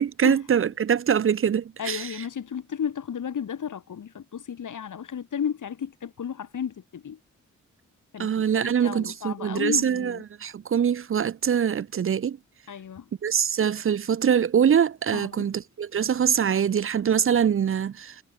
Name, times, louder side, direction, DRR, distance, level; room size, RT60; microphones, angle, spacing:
voice 1, 0.0-2.1 8.2-12.4 13.2-18.1, right 8 dB, 45° right, 0.5 m, -23 dB
voice 2, 1.8-7.2 8.1-8.3 8.6-10.2 12.7-13.1 15.1-15.5, left 8 dB, 80° left, 4.4 m, -33 dB
wide cardioid pair, 165°, 30 cm